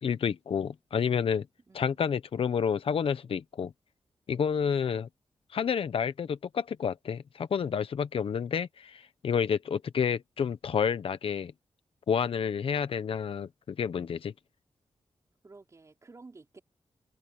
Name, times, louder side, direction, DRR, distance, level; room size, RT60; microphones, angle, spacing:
voice 1, 0.0-1.5 1.7-3.7 4.3-5.1 5.5-11.5 12.1-14.3, left 7 dB, 75° left, 1.1 m, -29 dB
voice 2, 1.7-2.0 4.6-4.9 15.4-16.6, right 3 dB, 35° right, 5.5 m, -53 dB
open air
wide cardioid pair, 120°, 9 cm